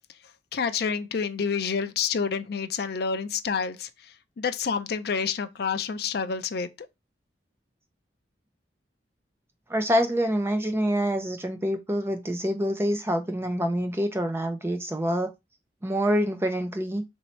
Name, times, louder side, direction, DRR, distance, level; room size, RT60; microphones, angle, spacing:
voice 1, 0.1-6.9, left 6 dB, 55° left, 0.4 m, -29 dB
voice 2, 9.7-15.3 15.8-17.0, equal, 15° right, 0.5 m, -26 dB
3.1 x 2.7 x 4.3 m
head